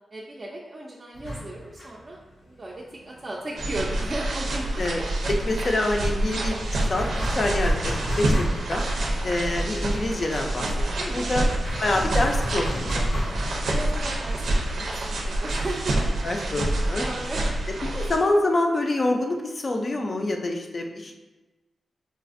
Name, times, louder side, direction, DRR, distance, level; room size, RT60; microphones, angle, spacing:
voice 1, 0.1-4.7 5.2-5.3 11.1-11.4 13.7-16.6 16.9-17.4 17.9-18.0 21.0-21.2, right 1 dB, 35° right, -4 dB, 0.4 m, -36 dB
sound 1, 1.1-4.6 4.8-4.9 5.2-16.2, equal, 85° left, 1.0 m, -36 dB
sound 2, 3.6-18.2, right 1 dB, 90° right, 0.5 m, -27 dB
voice 2, 5.4-7.8 8.2-8.3 8.7-8.8 9.2-10.7 11.0-11.5 11.8-13.1 13.5-13.7 14.8-14.9 16.2-17.0 18.0-21.2, left 2 dB, 40° left, 2 dB, 0.4 m, -26 dB
4.1 x 2.4 x 2.5 m, 1.1 s
wide cardioid pair, 130°, 0 cm